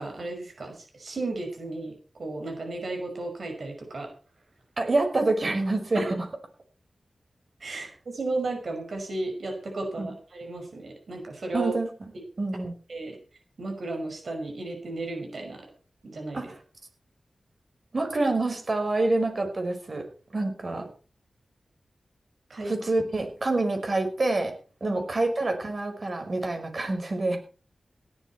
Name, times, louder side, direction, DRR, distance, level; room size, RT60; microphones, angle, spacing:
voice 1, 0.0-1.9 2.2-4.1 5.9-6.1 7.6-11.7 12.9-13.2 13.6-15.7 16.0-16.5 22.5-22.8 24.8-25.0, right 2 dB, 70° right, 3 dB, 5.5 m, -34 dB
voice 2, 4.8-6.2 10.0-10.1 11.5-11.9 12.4-12.7 16.3-16.5 17.9-20.0 20.3-20.9 22.7-24.5 24.8-27.4, right 2 dB, 50° right, 5 dB, 5.5 m, -26 dB
17.0 x 12.0 x 4.6 m, 0.37 s
wide cardioid pair, 70°, 0 cm